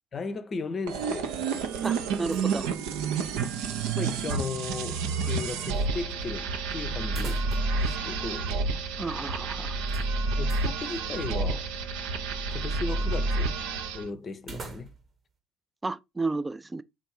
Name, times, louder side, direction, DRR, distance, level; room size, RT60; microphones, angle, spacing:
voice 1, 0.1-1.4 3.9-8.5 10.4-11.7 12.5-13.5 13.9-14.9, left 4 dB, 35° left, 0.6 m, -36 dB
sound 1, 0.9-14.1, right 4 dB, 65° right, 0.6 m, -29 dB
voice 2, 1.8-2.7 9.0-9.7 15.8-16.8, right 3 dB, 15° right, 0.4 m, -32 dB
sound 2, 1.8-2.7 3.0-3.1 7.0-7.9 8.2-8.3 9.9-10.7 14.4-15.2, right 3 dB, 40° right, 1.0 m, -44 dB
3.7 x 2.6 x 4.5 m
figure-of-eight pair, 55°, 0 cm